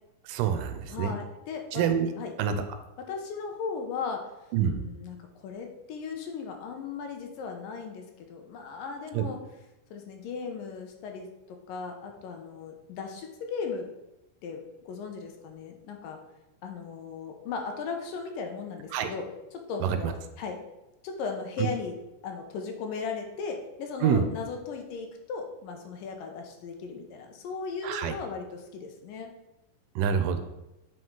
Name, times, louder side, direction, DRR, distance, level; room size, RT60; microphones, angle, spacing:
voice 1, 0.3-1.1 1.7-2.1 2.4-2.6 4.5-4.8 9.1-9.3 18.9-19.1 19.8-20.1 24.0-24.3 27.8-28.2 30.0-30.4, right 8 dB, 80° right, 8 dB, 2.2 m, -26 dB
voice 2, 0.9-1.8 2.2-2.3 3.0-4.2 4.7-9.4 9.9-13.9 14.4-16.2 16.6-20.6 21.0-22.0 22.2-29.3, left 5 dB, 90° left, 3 dB, 2.6 m, -37 dB
7.6 x 5.3 x 3.8 m, 0.95 s
omnidirectional pair, 3.8 m